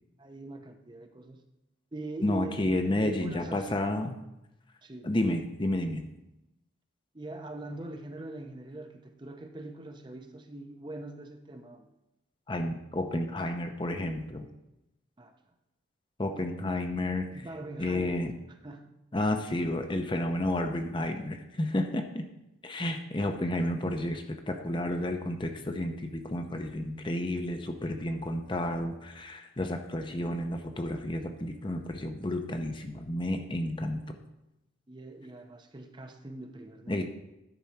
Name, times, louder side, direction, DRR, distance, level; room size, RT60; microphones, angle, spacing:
voice 1, 0.2-1.4 1.9-3.7 4.8-5.1 7.1-11.9 15.2-15.3 17.3-18.2 18.6-18.9 34.9-37.0, right 2 dB, 25° right, 6 dB, 0.6 m, -42 dB
voice 2, 2.2-4.2 5.0-6.1 12.5-14.5 16.2-17.4 17.8-18.3 19.1-22.3 22.6-34.2 36.9-37.0, left 1 dB, 25° left, 6 dB, 0.6 m, -31 dB
10.5 x 4.3 x 5.8 m, 0.92 s
head